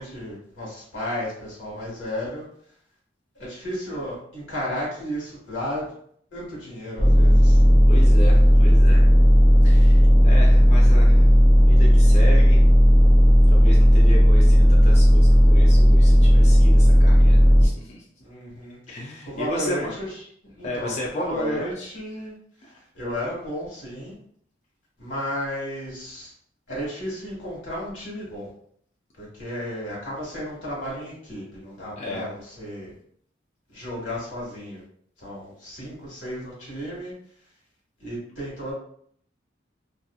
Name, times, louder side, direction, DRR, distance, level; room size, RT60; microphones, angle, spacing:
voice 1, 0.0-2.5 3.4-5.9 6.3-7.6 18.2-18.8 19.3-20.2 20.4-22.4 22.9-24.1 25.0-26.3 26.7-28.5 29.2-32.9 33.7-34.8 35.2-37.1 38.0-38.7, equal, 85° left, -5 dB, 1.4 m, -33 dB
sound 1, 7.0-17.7, equal, 15° left, 0.7 m, -14 dB
voice 2, 7.9-9.1 9.6-11.3 11.6-12.7 13.5-18.0 18.9-19.9 20.6-21.9 22.6-22.7 32.0-32.3, equal, 35° left, -3 dB, 0.4 m, -34 dB
2.7 x 2.5 x 2.3 m, 0.64 s
head